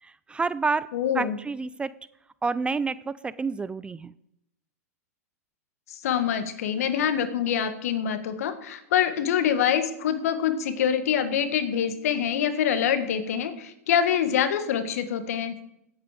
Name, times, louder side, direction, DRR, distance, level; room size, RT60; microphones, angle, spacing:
voice 1, 0.0-0.9 1.1-1.9 2.4-4.1, right 4 dB, 10° right, 17 dB, 0.3 m, -29 dB
voice 2, 0.9-1.4 5.9-15.5, left 8 dB, 65° left, 10 dB, 1.6 m, -25 dB
16.5 x 8.6 x 5.1 m, 0.82 s
hypercardioid pair, 110°, 9 cm